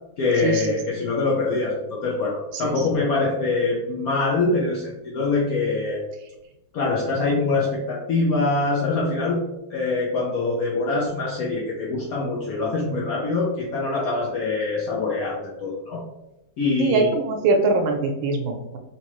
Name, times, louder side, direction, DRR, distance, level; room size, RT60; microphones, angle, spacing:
voice 1, 0.2-6.0 6.7-9.4 9.7-16.0 16.6-17.1, left 3 dB, 75° left, -3 dB, 0.8 m, -24 dB
voice 2, 16.8-18.8, right 3 dB, 75° right, 4 dB, 1.3 m, -22 dB
3.5 x 3.0 x 3.0 m, 0.93 s
omnidirectional pair, 2.3 m